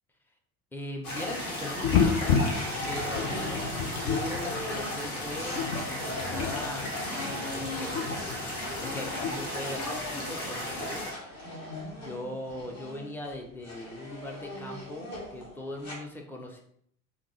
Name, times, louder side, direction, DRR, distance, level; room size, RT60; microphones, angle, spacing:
voice 1, 0.7-2.4 2.8-5.6 6.0-8.4 8.8-11.1 11.9-16.6, left 1 dB, 5° left, 1 dB, 0.5 m, -40 dB
sound 1, 1.0-11.1, left 1 dB, 80° left, 0.9 m, -35 dB
sound 2, 1.2-2.1 2.5-16.0, left 1 dB, 35° left, 1.4 m, -41 dB
sound 3, 1.8-9.3, left 6 dB, 60° left, 0.6 m, -31 dB
3.5 x 2.3 x 3.1 m, 0.67 s
figure-of-eight pair, 65°, 43 cm